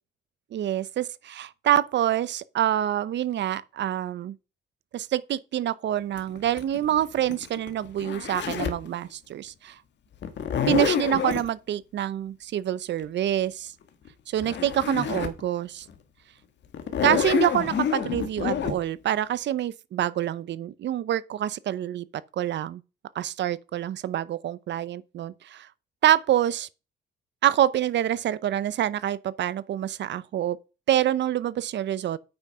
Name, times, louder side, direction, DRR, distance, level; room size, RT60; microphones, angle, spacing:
voice 1, 0.5-4.4 4.9-9.8 10.7-13.7 14.3-15.9 17.0-22.1 22.3-22.8 23.1-25.7 26.0-26.7 27.4-30.6 30.9-32.2, right 11 dB, 65° right, 0.7 m, -26 dB
Zipper (clothing), 6.2-8.9 10.2-11.5 14.1-14.2 14.4-15.4 15.9-16.0 16.7-18.7, left 8 dB, 65° left, 1.5 m, -28 dB
8.9 x 6.1 x 5.6 m
cardioid pair, 90°, 20 cm